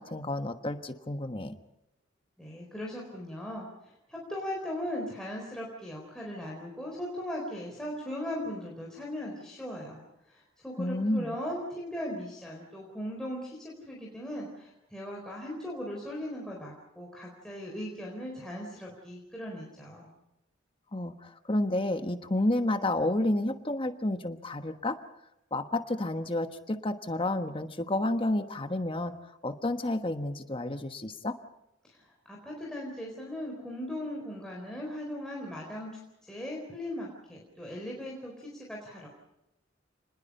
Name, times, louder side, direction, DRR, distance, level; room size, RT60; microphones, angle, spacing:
voice 1, 0.0-1.6 10.8-11.3 20.9-25.0 25.5-29.1 29.4-31.4, left 1 dB, 25° left, 8 dB, 1.3 m, -30 dB
voice 2, 2.4-10.0 10.3-20.1 31.8-39.1, left 1 dB, 5° left, -3 dB, 4.3 m, -38 dB
29.5 x 20.5 x 5.5 m, 0.88 s
head